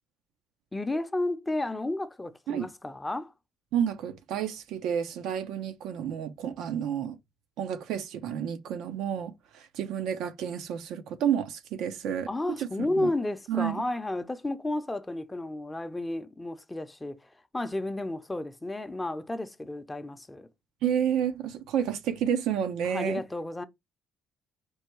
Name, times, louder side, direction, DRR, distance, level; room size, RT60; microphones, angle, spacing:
voice 1, 0.7-3.3 12.3-20.5 22.8-23.6, left 2 dB, 15° left, 0.6 m, -32 dB
voice 2, 3.7-7.2 7.6-12.3 12.6-12.7 13.0-13.1 13.5-13.8 20.8-23.2, right 9 dB, 80° right, 0.7 m, -30 dB
4.6 x 2.2 x 4.5 m
cardioid pair, 85°, 0 cm